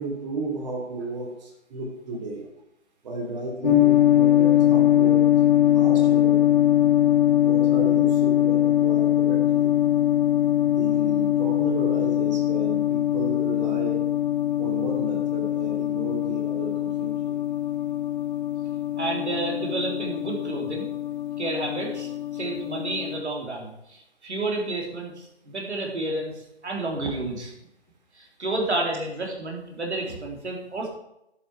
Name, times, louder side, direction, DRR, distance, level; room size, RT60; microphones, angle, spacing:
voice 1, 0.0-2.5 3.0-5.3 5.6-6.5 7.4-9.7 10.6-14.0 14.6-17.4, right 2 dB, 35° right, 0 dB, 3.2 m, -33 dB
sound 1, 3.6-23.2, left 12 dB, 40° left, 1.7 m, -22 dB
voice 2, 19.0-20.9 21.4-27.5 28.1-30.9, right 2 dB, 70° right, 0 dB, 3.6 m, -30 dB
11.0 x 8.1 x 4.9 m, 0.83 s
figure-of-eight pair, 145°, 35 cm